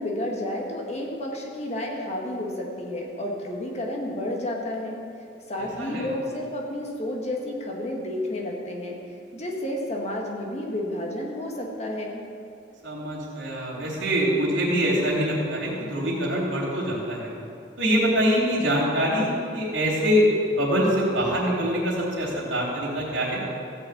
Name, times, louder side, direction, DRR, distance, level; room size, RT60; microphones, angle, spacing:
voice 1, 0.0-5.0 5.5-9.0 9.3-12.2, left 1 dB, 35° left, -1 dB, 1.7 m, -31 dB
voice 2, 12.8-17.3 17.8-23.4, equal, 80° right, -4 dB, 3.5 m, -24 dB
15.0 x 5.7 x 8.5 m, 2.5 s
head